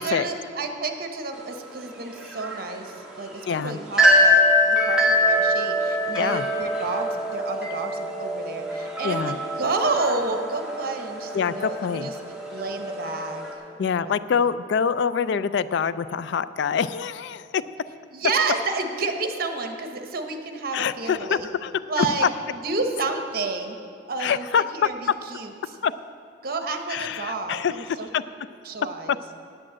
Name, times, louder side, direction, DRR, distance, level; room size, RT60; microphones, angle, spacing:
voice 1, 0.0-12.1 12.5-13.5 13.8-14.2 18.1-21.5 21.9-23.8 24.1-25.5 26.4-28.1 28.6-29.2, right 3 dB, 55° right, 5 dB, 1.0 m, -30 dB
sound 1, 1.3-13.5, equal, 5° right, 1.5 m, -24 dB
voice 2, 3.5-3.8 6.1-6.4 9.0-9.4 11.3-12.1 13.8-17.6 20.7-21.7 22.0-22.1 24.2-24.9 25.8-25.9 26.9-28.2 29.1-29.2, left 7 dB, 65° left, 15 dB, 0.3 m, -25 dB
8.8 x 8.5 x 7.5 m, 2.5 s
head